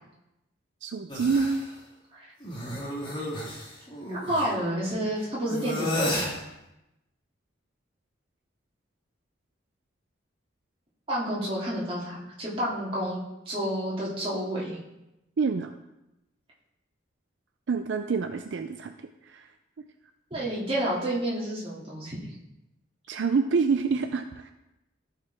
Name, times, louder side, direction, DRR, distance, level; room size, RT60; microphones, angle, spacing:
voice 1, 0.8-1.6 15.4-15.7 17.7-18.9 19.2-19.5 23.1-24.5, right 5 dB, 65° right, 7 dB, 0.4 m, -27 dB
sound 1, 1.1-1.6 2.4-4.5 5.5-6.4, left 1 dB, 25° left, 1.5 m, -32 dB
voice 2, 4.1-6.2 11.1-13.2 13.5-14.8 20.3-22.2, right 1 dB, 30° right, -6 dB, 2.4 m, -30 dB
14.5 x 4.9 x 3.4 m, 0.92 s
head